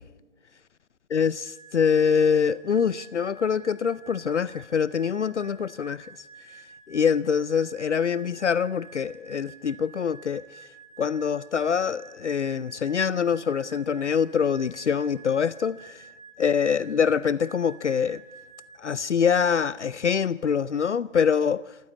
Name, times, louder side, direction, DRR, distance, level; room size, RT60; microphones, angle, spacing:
voice 1, 1.1-6.1 6.9-10.4 11.0-16.0 16.4-18.2 18.8-21.6, left 7 dB, 65° left, 0.6 m, -24 dB
sound 1, 1.4-18.8, right 5 dB, 25° right, 1.0 m, -50 dB
26.5 x 15.0 x 8.5 m
hypercardioid pair, 175°, 38 cm